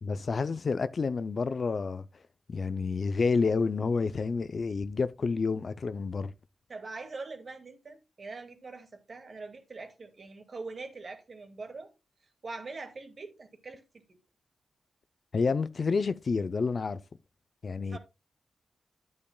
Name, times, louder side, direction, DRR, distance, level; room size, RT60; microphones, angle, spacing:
voice 1, 0.0-2.0 2.5-6.3 15.3-17.0 17.6-18.0, left 4 dB, 55° left, 0.5 m, -29 dB
voice 2, 6.7-11.9 12.4-13.8 14.1-14.2 17.9-18.0, right 3 dB, 50° right, 2.1 m, -43 dB
11.0 x 8.6 x 2.3 m
wide cardioid pair, 95°, 0 cm